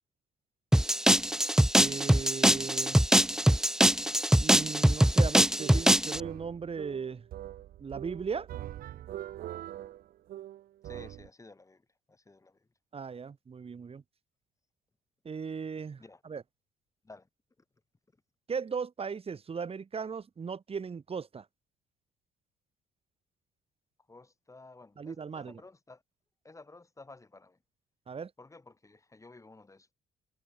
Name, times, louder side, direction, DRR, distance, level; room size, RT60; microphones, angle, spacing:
sound 1, 0.7-6.2, right 1 dB, 5° right, 0.7 m, -23 dB
voice 1, 1.8-3.1 4.4-7.3 7.8-8.5 12.9-14.0 15.3-16.4 18.5-21.5 25.0-25.6 28.1-28.3, right 5 dB, 35° right, 5.2 m, -37 dB
sound 2, 5.3-11.3, right 13 dB, 65° right, 1.5 m, -43 dB
voice 2, 10.8-12.7 16.0-16.2 17.0-17.3 24.1-26.0 26.4-27.6 28.4-29.9, left 3 dB, 20° left, 5.9 m, -53 dB
supercardioid pair, 80°, 16 cm